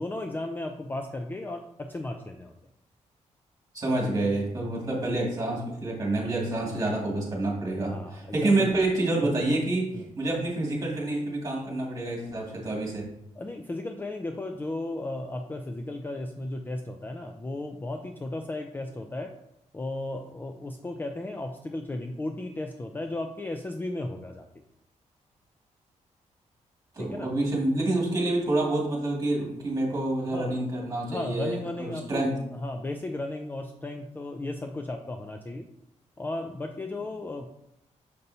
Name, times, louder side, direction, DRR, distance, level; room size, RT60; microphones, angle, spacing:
voice 1, 0.0-2.5 7.8-8.7 9.9-10.1 13.4-19.3 19.7-24.5 27.0-27.3 30.3-30.5 31.1-32.3 32.5-35.7 36.2-37.5, left 2 dB, 15° left, 5 dB, 0.4 m, -35 dB
voice 2, 3.7-13.1 26.9-32.4, right 2 dB, 25° right, -3 dB, 2.1 m, -28 dB
6.7 x 5.4 x 2.7 m, 0.81 s
wide cardioid pair, 135°, 13 cm